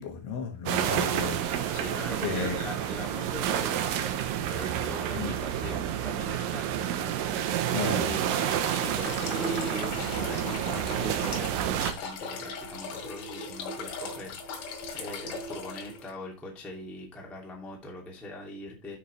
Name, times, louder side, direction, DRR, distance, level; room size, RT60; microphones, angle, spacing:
voice 1, 0.0-1.8 2.2-2.6 5.1-5.3 7.7-8.1, left 5 dB, 65° left, 3.2 m, -34 dB
sound 1, 0.7-11.9, right 10 dB, 85° right, 2.0 m, -29 dB
voice 2, 1.7-4.2 4.5-6.8 7.1-19.0, left 1 dB, ahead, 1.0 m, -41 dB
sound 2, 8.9-16.1, left 3 dB, 80° left, 4.4 m, -38 dB
12.0 x 5.9 x 3.3 m
omnidirectional pair, 5.4 m